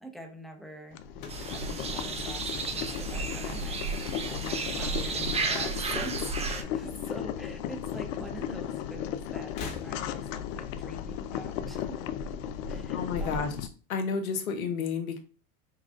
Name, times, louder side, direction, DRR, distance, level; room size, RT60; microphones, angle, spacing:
voice 1, 0.0-12.2 12.7-13.6, equal, ahead, 2 dB, 0.8 m, -44 dB
Boiling, 0.9-13.7, left 9 dB, 65° left, 0.5 m, -36 dB
sound 1, 1.1-3.5 3.8-4.4 5.4-6.4 6.7-6.8 7.9-8.0 9.4-10.4, left 4 dB, 45° left, 1.1 m, -46 dB
sound 2, 1.3-6.6, right 4 dB, 15° right, 0.4 m, -33 dB
voice 2, 12.9-13.5 13.9-15.2, left 5 dB, 80° left, 6 dB, 1.0 m, -31 dB
5.9 x 2.3 x 2.4 m, 0.39 s
hypercardioid pair, 95°, 41 cm